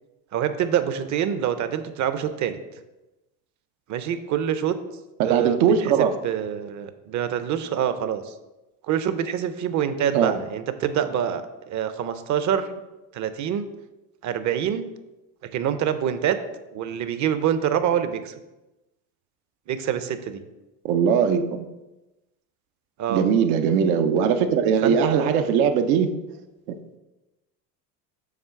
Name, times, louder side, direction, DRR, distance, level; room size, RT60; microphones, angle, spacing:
voice 1, 0.3-2.6 3.9-4.8 5.2-8.3 8.9-12.7 13.1-13.7 14.2-14.9 15.5-16.4 16.7-18.3 19.7-20.4 23.0-23.2 24.8-25.3, right 9 dB, 45° right, 11 dB, 0.6 m, -26 dB
voice 2, 5.2-6.1 10.1-10.4 20.8-21.6 23.1-26.1, right 7 dB, 85° right, 7 dB, 0.8 m, -20 dB
7.4 x 3.1 x 5.7 m, 1.0 s
supercardioid pair, 115°, 43 cm